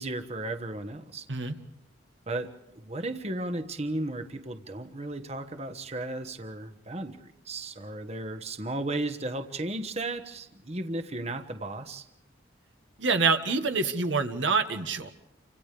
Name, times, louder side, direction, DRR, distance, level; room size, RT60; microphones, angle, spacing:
voice 1, 0.0-1.3 2.3-12.1, right 2 dB, 35° right, 7 dB, 1.3 m, -35 dB
voice 2, 13.0-15.1, right 4 dB, 75° right, 6 dB, 1.7 m, -26 dB
30.0 x 26.0 x 3.4 m, 0.87 s
head